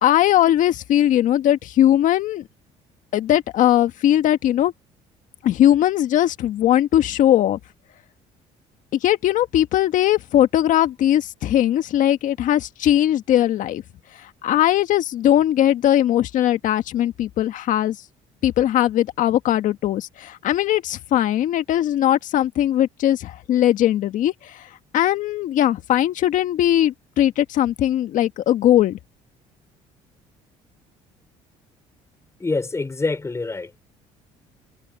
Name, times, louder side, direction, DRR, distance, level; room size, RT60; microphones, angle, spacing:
voice 1, 0.0-2.5 3.1-4.7 5.4-7.6 8.9-13.8 14.2-18.0 18.4-29.0, left 12 dB, 65° left, 1.6 m, -19 dB
voice 2, 32.4-33.7, left 3 dB, 20° left, 3.8 m, -25 dB
supercardioid pair, 85°, 14 cm